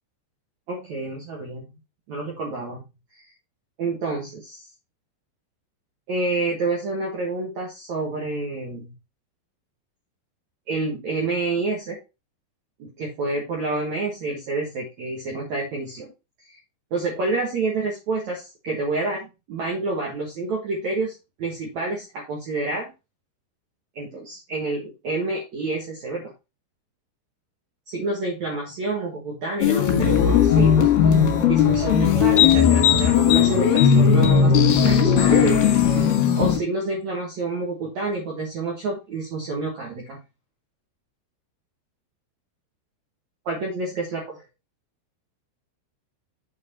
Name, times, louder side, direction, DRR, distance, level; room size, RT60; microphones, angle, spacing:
voice 1, 0.7-1.7 2.1-2.8 3.1-3.2 3.8-4.6 6.1-8.9 10.7-12.0 12.8-16.1 16.5-16.6 16.9-22.9 23.9-26.2 27.9-31.2 31.4-35.6 35.9-40.2 43.4-44.2, right 3 dB, 75° right, -1 dB, 1.6 m, -28 dB
sound 1, 29.6-36.6, left 8 dB, 60° left, 3.0 m, -17 dB
8.5 x 4.4 x 4.2 m, 0.27 s
omnidirectional pair, 5.8 m